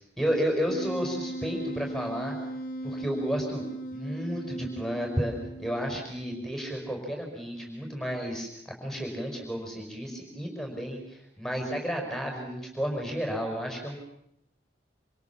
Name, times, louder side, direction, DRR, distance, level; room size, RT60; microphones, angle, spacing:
voice 1, 0.2-2.4 2.8-3.6 3.9-14.0, equal, ahead, 1 dB, 5.5 m, -32 dB
Wind instrument woodwind instrument, 0.7-6.1, right 1 dB, 50° left, 2.0 m, -38 dB
27.5 x 27.0 x 7.3 m, 0.75 s
head